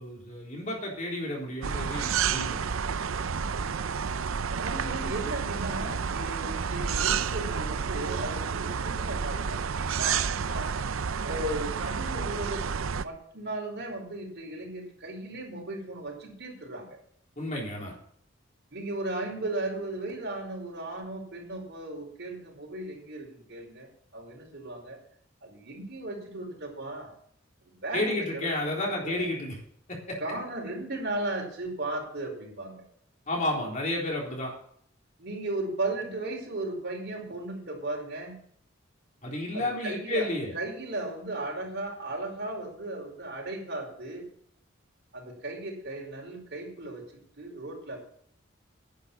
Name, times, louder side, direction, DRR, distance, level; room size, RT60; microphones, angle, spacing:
voice 1, 0.0-2.6 17.4-17.9 27.9-29.6 29.9-30.2 33.3-34.5 39.2-40.5, left 1 dB, 40° left, -1 dB, 3.9 m, -31 dB
sound 1, 1.6-13.0, right 6 dB, 90° right, 0.6 m, -30 dB
voice 2, 4.6-10.8 11.2-17.0 18.7-25.0 25.4-27.1 27.6-28.5 28.8-29.3 30.2-32.8 35.2-38.4 39.5-40.3 40.5-44.3 45.1-48.0, right 2 dB, 55° right, -1 dB, 4.8 m, -36 dB
10.5 x 10.5 x 7.1 m, 0.63 s
head